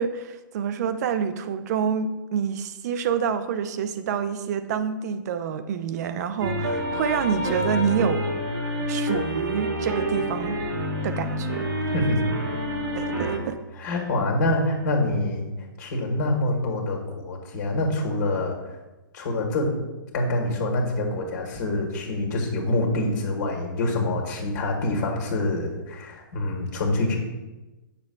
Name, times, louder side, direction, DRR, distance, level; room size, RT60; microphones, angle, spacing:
voice 1, 0.0-8.3 8.9-10.6 11.0-11.7 12.9-13.6, right 7 dB, 50° right, 11 dB, 0.6 m, -27 dB
sound 1, 6.4-13.4, equal, 85° right, 1.5 m, -27 dB
voice 2, 13.8-15.4 15.8-18.8 19.1-19.7 20.1-27.2, left 1 dB, 55° left, -1 dB, 1.7 m, -26 dB
8.3 x 6.7 x 2.3 m, 1.1 s
hypercardioid pair, 135°, 11 cm